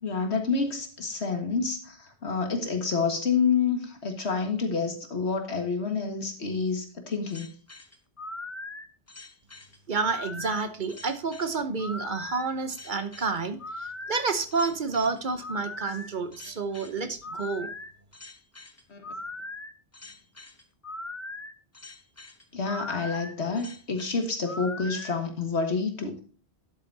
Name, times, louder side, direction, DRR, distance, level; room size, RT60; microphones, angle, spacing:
voice 1, 0.0-7.5 18.9-19.0 22.5-26.2, left 5 dB, 90° left, 4 dB, 2.0 m, -28 dB
sound 1, 7.3-25.1, left 2 dB, 15° left, 0.6 m, -40 dB
voice 2, 9.9-17.7, right 4 dB, 50° right, 9 dB, 1.0 m, -29 dB
11.0 x 8.2 x 2.7 m, 0.39 s
omnidirectional pair, 1.1 m